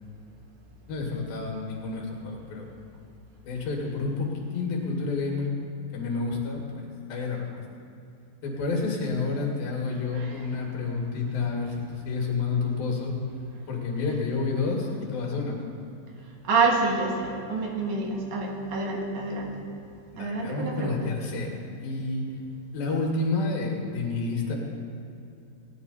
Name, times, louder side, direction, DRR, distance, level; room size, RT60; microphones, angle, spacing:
voice 1, 0.9-2.7 3.5-5.5 5.9-7.5 8.4-11.8 12.1-13.1 13.7-15.6 20.1-22.3 22.7-24.6, left 4 dB, 85° left, -1 dB, 3.8 m, -29 dB
voice 2, 16.4-19.5 20.2-21.0, right 3 dB, 60° right, 0 dB, 2.7 m, -27 dB
17.5 x 10.0 x 4.2 m, 2.7 s
omnidirectional pair, 4.1 m